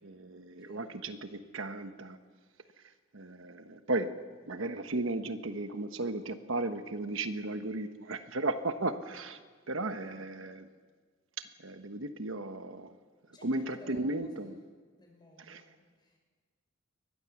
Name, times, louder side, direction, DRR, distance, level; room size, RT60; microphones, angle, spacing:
voice 1, 0.0-2.2 3.1-4.2 4.5-9.4 9.7-10.7 11.4-12.9 13.4-14.5 15.5-15.6, right 2 dB, 75° right, 9 dB, 1.1 m, -35 dB
voice 2, 0.6-1.1 10.0-10.3 13.3-14.5 15.0-16.2, left 1 dB, 20° left, 1 dB, 5.6 m, -55 dB
23.0 x 20.0 x 7.2 m, 1.5 s
head